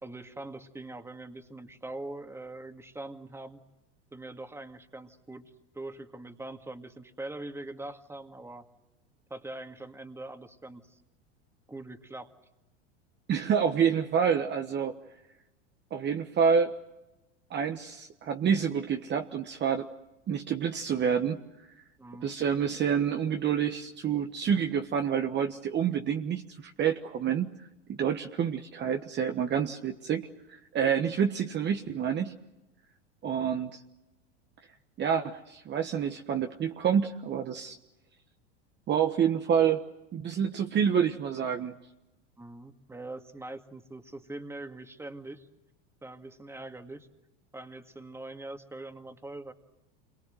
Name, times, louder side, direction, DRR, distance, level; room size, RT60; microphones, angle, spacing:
voice 1, 0.0-3.6 4.1-8.7 9.3-11.0 11.7-12.3 22.0-22.3 42.4-45.5 46.0-47.1 47.5-49.5, right 2 dB, 5° right, 7 dB, 2.1 m, -43 dB
voice 2, 13.3-15.0 15.9-16.7 17.5-19.9 20.3-21.7 22.2-27.5 27.9-32.3 33.2-33.8 35.0-37.8 38.9-39.9 40.1-41.7, right 7 dB, 30° right, 5 dB, 1.4 m, -28 dB
28.0 x 23.0 x 7.8 m, 1.0 s
hypercardioid pair, 100°, 35 cm